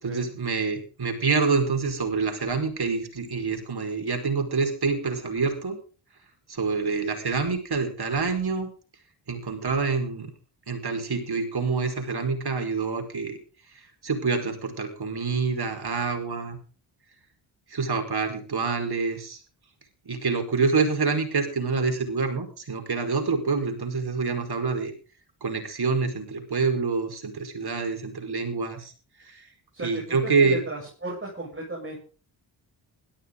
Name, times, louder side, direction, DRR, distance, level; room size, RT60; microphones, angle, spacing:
voice 1, 0.0-5.8 6.5-8.7 9.3-10.3 10.7-13.4 14.0-16.6 17.7-19.4 20.0-24.9 25.4-28.9 29.2-29.4 29.8-30.6, right 4 dB, 50° right, 5 dB, 5.1 m, -26 dB
voice 2, 29.7-32.0, right 2 dB, 25° right, -2 dB, 7.7 m, -35 dB
17.0 x 14.0 x 3.9 m, 0.38 s
supercardioid pair, 50°, 48 cm